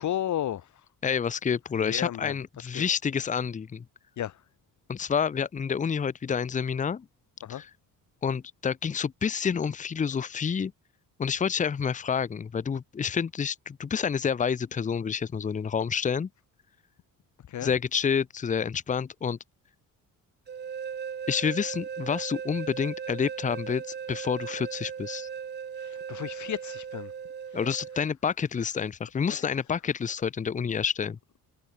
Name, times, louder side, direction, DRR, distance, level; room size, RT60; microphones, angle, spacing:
voice 1, 0.0-0.9 1.7-2.9 4.2-4.4 7.4-7.6 17.5-17.7 25.7-27.1 27.5-27.8 29.3-29.6, left 11 dB, 55° left, 4.7 m, -34 dB
voice 2, 1.0-3.8 4.9-7.0 7.5-7.7 8.2-10.7 11.2-16.3 17.6-19.4 21.3-25.3 27.5-31.2, left 6 dB, 20° left, 0.9 m, -28 dB
sound 1, 20.5-28.1, right 7 dB, 30° right, 1.5 m, -37 dB
cardioid pair, 170°, 34 cm